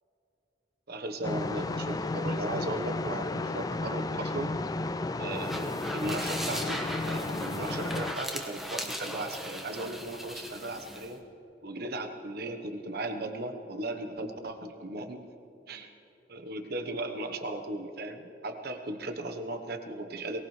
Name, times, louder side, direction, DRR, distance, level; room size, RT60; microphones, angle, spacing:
voice 1, 0.9-4.5 5.2-11.2 11.6-15.2 15.7-15.9 16.3-20.4, right 2 dB, 55° right, 6 dB, 1.2 m, -37 dB
sound 1, 1.2-8.1, left 2 dB, 20° left, 0.4 m, -33 dB
sound 2, 5.3-11.1, equal, ahead, 1.2 m, -38 dB
22.5 x 18.5 x 3.3 m, 2.9 s
head